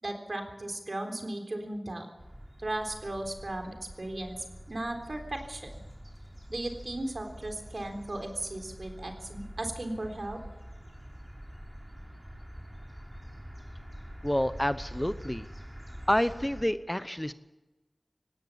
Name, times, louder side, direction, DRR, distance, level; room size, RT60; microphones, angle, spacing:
voice 1, 0.0-2.1 2.6-4.4 4.7-5.7 6.5-10.4, right 1 dB, 60° right, 4 dB, 3.7 m, -36 dB
sound 1, 2.2-16.6, equal, 15° right, 3.3 m, -46 dB
voice 2, 14.2-15.5 16.1-17.3, left 1 dB, 15° left, 13 dB, 0.8 m, -28 dB
18.0 x 16.5 x 8.7 m, 1.1 s
wide cardioid pair, 55°, 0 cm